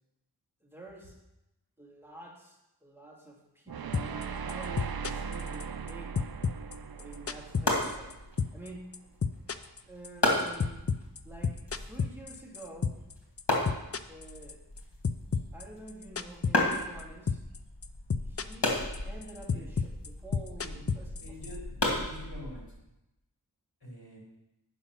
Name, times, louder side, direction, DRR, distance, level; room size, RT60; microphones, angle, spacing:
voice 1, 0.6-1.2 1.8-6.2 6.9-8.2 8.5-9.1 9.9-10.9 11.2-13.1 14.1-14.6 15.5-17.4 18.2-21.4, right 2 dB, 5° right, -2 dB, 2.1 m, -49 dB
sound 1, 3.7-8.8, right 6 dB, 60° right, 0.5 m, -39 dB
sound 2, 3.9-4.2 4.5-5.9 6.1-8.1 8.4-8.7 8.9-13.1 13.4-14.8 15.0-17.0 17.3-17.6 17.8-18.7 18.9-21.6, left 5 dB, 35° left, 0.4 m, -31 dB
sound 3, 7.0-22.8, left 1 dB, 80° left, 2.0 m, -35 dB
voice 2, 21.2-22.6 23.8-24.2, left 1 dB, 60° left, -5 dB, 4.0 m, -46 dB
8.6 x 5.7 x 5.9 m, 0.94 s
wide cardioid pair, 45°, 40 cm